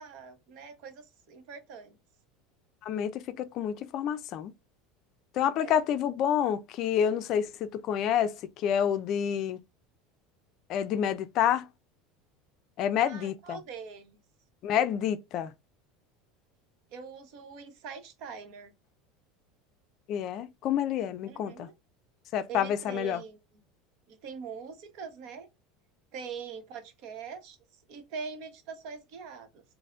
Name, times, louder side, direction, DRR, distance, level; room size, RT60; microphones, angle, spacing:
voice 1, 0.0-2.0 5.6-5.8 13.0-14.2 16.9-18.7 21.3-21.7 22.5-23.6 24.1-25.5 26.1-27.6 27.9-29.6, right 6 dB, 60° right, 0.9 m, -43 dB
voice 2, 2.8-4.5 5.3-9.6 10.7-11.7 12.8-13.6 14.6-15.5 20.1-21.7 22.3-23.2, left 9 dB, 55° left, 0.4 m, -28 dB
4.1 x 2.0 x 2.3 m
hypercardioid pair, 80°, 0 cm